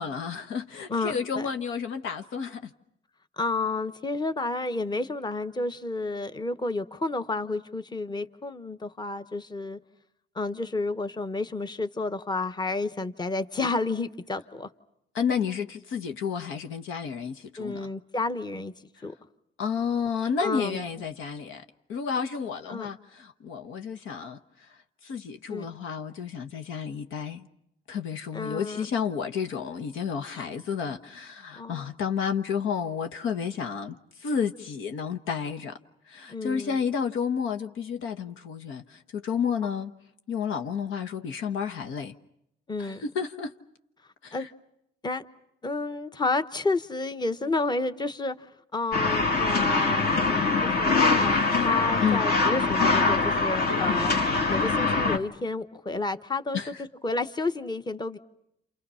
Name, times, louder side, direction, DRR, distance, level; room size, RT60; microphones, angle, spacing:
voice 1, 0.0-2.7 15.1-17.8 19.6-21.6 21.9-24.4 25.0-27.5 27.9-35.7 36.1-39.9 40.3-42.1 42.8-43.5 44.2-44.5 52.0-52.2 56.5-56.7, left 6 dB, 85° left, 1.3 m, -31 dB
voice 2, 0.9-1.5 3.4-9.8 10.3-14.7 17.6-18.7 19.0-19.1 20.4-20.8 22.7-22.9 25.5-25.7 28.3-28.9 30.4-30.5 31.5-31.9 36.3-36.8 42.7-43.0 44.3-44.5 45.0-45.2 45.6-48.4 48.7-54.1 54.5-56.6 57.0-58.2, left 3 dB, 20° left, 1.0 m, -31 dB
sound 1, 48.9-55.2, left 3 dB, 50° left, 1.9 m, -23 dB
30.0 x 28.0 x 5.7 m
cardioid pair, 90°, 20 cm